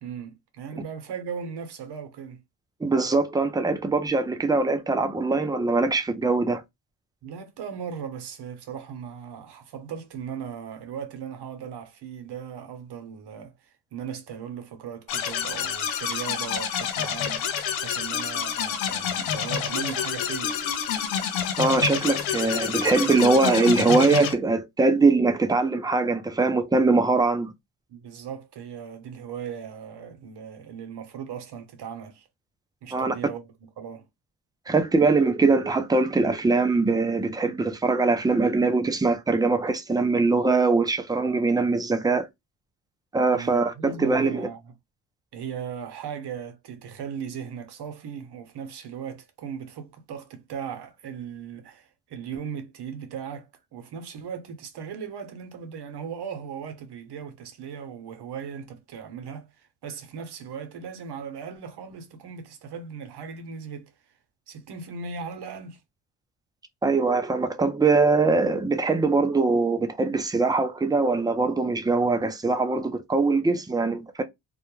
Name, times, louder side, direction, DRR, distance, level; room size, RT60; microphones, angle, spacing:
voice 1, 0.0-2.4 7.2-20.6 27.9-32.3 32.8-33.5 33.8-34.0 43.3-44.7 45.3-63.9 64.5-65.8, right 7 dB, 60° right, 0.9 m, -38 dB
voice 2, 2.8-6.6 21.6-27.5 32.9-33.1 34.7-42.3 43.1-44.5 66.8-74.2, right 3 dB, 10° right, 0.4 m, -22 dB
sound 1, 15.1-24.3, left 8 dB, 85° left, 0.6 m, -28 dB
2.2 x 2.1 x 3.0 m
supercardioid pair, 65°, 46 cm